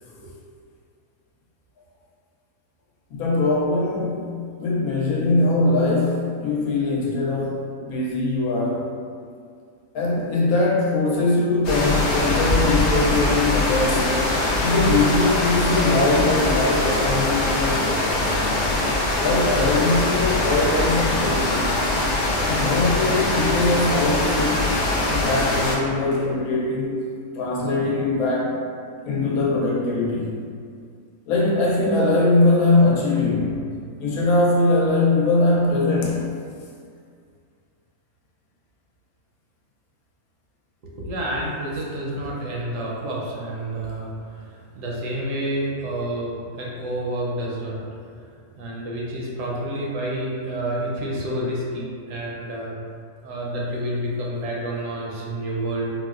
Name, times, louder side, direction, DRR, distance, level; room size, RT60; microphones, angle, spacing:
voice 1, 3.1-4.3 4.6-8.8 9.9-14.2 14.6-18.2 19.2-21.6 22.4-24.6 25.0-27.1 27.4-28.6 29.0-30.4 31.3-33.6 34.0-36.2, left 2 dB, 80° left, -4 dB, 1.1 m, -21 dB
sound 1, 11.6-25.8, left 2 dB, 65° left, 0.8 m, -22 dB
voice 2, 40.8-47.8 48.6-52.8 53.2-55.9, right 1 dB, 70° right, -4 dB, 0.9 m, -29 dB
3.9 x 2.1 x 2.4 m, 2.2 s
omnidirectional pair, 1.5 m